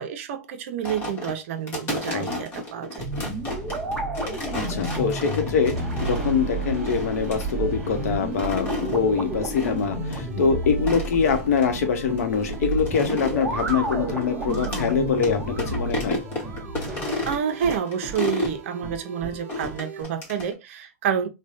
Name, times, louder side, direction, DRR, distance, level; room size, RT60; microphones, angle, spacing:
voice 1, 0.0-3.1 10.4-10.6 17.2-21.3, right 8 dB, 55° right, 0.6 m, -29 dB
sound 1, 0.8-6.4 6.8-7.5 8.2-9.0 9.5-9.8 10.1-10.2 10.7-11.7 12.2-14.9 15.2-15.3 15.6-18.6 19.5-20.5, left 2 dB, 25° left, 1.1 m, -33 dB
sound 2, 3.0-17.3, right 2 dB, ahead, 1.3 m, -31 dB
voice 2, 4.5-16.2, left 6 dB, 70° left, 0.9 m, -24 dB
sound 3, 4.9-20.0, right 5 dB, 20° right, 0.9 m, -39 dB
3.2 x 2.2 x 2.5 m
supercardioid pair, 150°, 8 cm